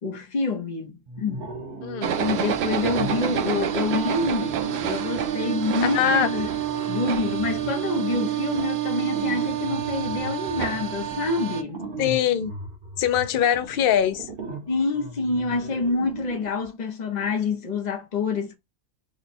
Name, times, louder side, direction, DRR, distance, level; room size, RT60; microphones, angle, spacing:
voice 1, 0.0-1.5 2.2-6.5 6.9-11.8 14.7-18.6, left 3 dB, 40° left, 0.7 m, -27 dB
sound 1, 1.1-2.4 2.8-16.7, right 3 dB, 40° right, 0.9 m, -37 dB
voice 2, 1.8-2.2 5.8-6.3 12.0-12.5 13.0-14.3, left 9 dB, 75° left, 0.5 m, -22 dB
sound 2, 2.0-11.6, right 10 dB, 90° right, 0.5 m, -28 dB
3.0 x 2.2 x 4.2 m
omnidirectional pair, 1.7 m